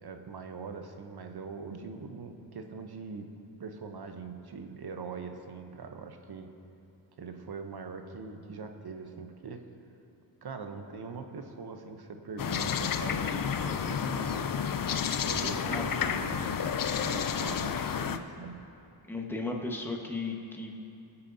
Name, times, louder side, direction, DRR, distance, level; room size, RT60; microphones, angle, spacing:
voice 1, 0.0-3.3 3.6-6.5 7.2-9.6 10.4-14.6 15.2-16.7 17.0-18.6, right 4 dB, 55° right, 6 dB, 0.9 m, -42 dB
sound 1, 12.4-18.2, left 7 dB, 45° left, 0.5 m, -31 dB
voice 2, 15.4-15.8 19.1-20.7, left 3 dB, 5° left, 0 dB, 1.3 m, -35 dB
23.0 x 8.2 x 2.8 m, 2.6 s
cardioid pair, 75°, 46 cm